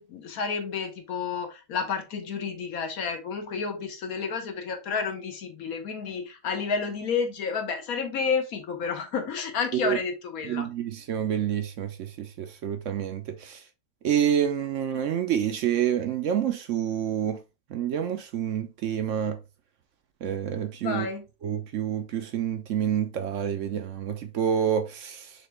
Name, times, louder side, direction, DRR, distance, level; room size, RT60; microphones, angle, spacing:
voice 1, 0.0-10.7 20.8-21.3, left 5 dB, 65° left, 1.2 m, -30 dB
voice 2, 10.4-13.6 14.0-17.4 17.7-19.4 20.2-21.1 21.4-25.3, right 9 dB, 65° right, 0.8 m, -28 dB
4.3 x 3.3 x 3.2 m
omnidirectional pair, 1.7 m